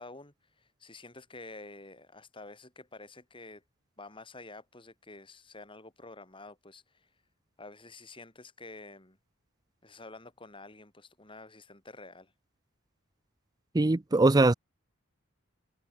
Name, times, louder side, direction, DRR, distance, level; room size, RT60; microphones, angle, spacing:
voice 1, 0.0-3.6 4.0-7.1 7.6-9.2 9.8-12.3, left 2 dB, 25° left, 3.9 m, -49 dB
voice 2, 13.7-14.5, right 2 dB, 20° right, 0.5 m, -22 dB
head